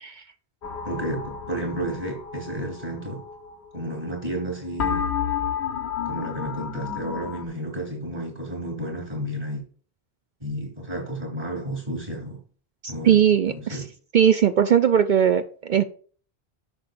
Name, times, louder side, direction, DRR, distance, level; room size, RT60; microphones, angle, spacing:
sound 1, 0.6-4.5 4.7-7.4, left 7 dB, 85° left, 1.3 m, -31 dB
voice 1, 0.8-3.2 3.7-5.0 6.0-9.6 10.4-12.4 12.9-13.2 13.5-13.9, right 1 dB, 40° right, 3.3 m, -31 dB
voice 2, 12.8-13.8 14.1-15.8, right 9 dB, 55° right, 0.6 m, -19 dB
10.5 x 6.8 x 2.6 m
omnidirectional pair, 1.1 m